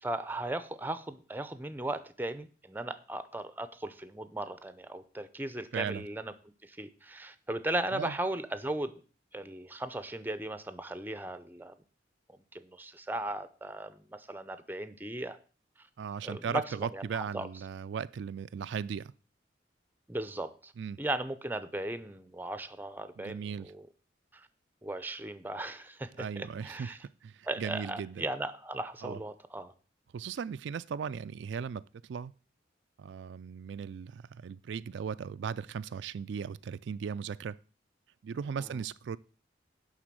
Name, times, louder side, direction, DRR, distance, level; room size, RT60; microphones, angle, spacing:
voice 1, 0.0-6.3 6.6-8.9 9.3-11.7 12.5-15.4 16.2-16.6 16.9-17.5 20.1-20.7 21.0-23.8 24.3-24.5 24.8-27.0 27.5-29.7 38.6-38.8, right 1 dB, 10° right, 0.6 m, -37 dB
voice 2, 5.7-6.0 7.9-8.1 16.0-19.1 20.8-21.0 23.2-23.7 26.2-28.2 29.0-29.2 30.1-32.3 33.0-37.6 38.2-39.2, right 6 dB, 75° right, 0.3 m, -37 dB
11.0 x 4.0 x 7.6 m
head